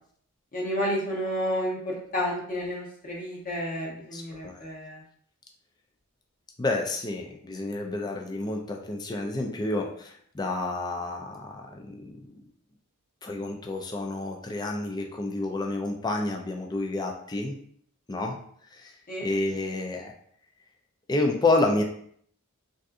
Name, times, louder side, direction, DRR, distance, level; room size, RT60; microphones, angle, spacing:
voice 1, 0.5-5.0 19.1-19.3, equal, 40° left, -3 dB, 0.9 m, -31 dB
voice 2, 4.1-4.5 6.6-12.3 13.2-17.5 18.1-18.4 18.8-18.9 19.2-20.1 21.1-21.8, left 2 dB, 20° left, 2 dB, 0.3 m, -29 dB
3.5 x 2.7 x 2.4 m, 0.63 s
head